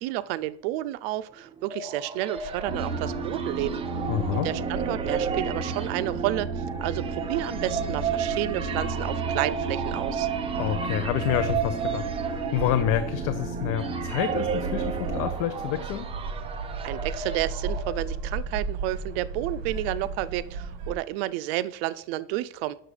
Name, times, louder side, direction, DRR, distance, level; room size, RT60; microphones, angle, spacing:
voice 1, 0.0-3.8 4.3-10.3 16.8-22.8, right 15 dB, 85° right, 14 dB, 0.5 m, -31 dB
sound 1, 1.4-18.4, right 7 dB, 20° right, 0.6 m, -33 dB
sound 2, 2.4-21.0, right 4 dB, 60° right, 1.7 m, -37 dB
sound 3, 2.6-15.3, right 3 dB, 40° right, 2.4 m, -33 dB
voice 2, 4.1-4.5 10.6-16.1, left 12 dB, 65° left, 10 dB, 0.6 m, -28 dB
6.6 x 6.1 x 4.9 m, 0.67 s
cardioid pair, 155°, 29 cm